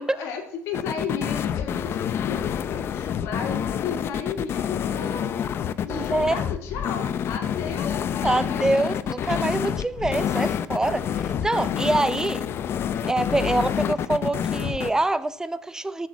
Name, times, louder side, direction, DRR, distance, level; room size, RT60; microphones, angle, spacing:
voice 1, 0.0-5.3 5.8-9.2, left 6 dB, 80° left, 2.5 m, -34 dB
sound 1, 0.7-14.9, left 9 dB, 55° left, 0.7 m, -27 dB
voice 2, 5.9-6.4 8.2-12.5 13.0-16.1, right 2 dB, 15° right, 0.6 m, -25 dB
10.5 x 6.7 x 7.3 m
cardioid pair, 95°, 5 cm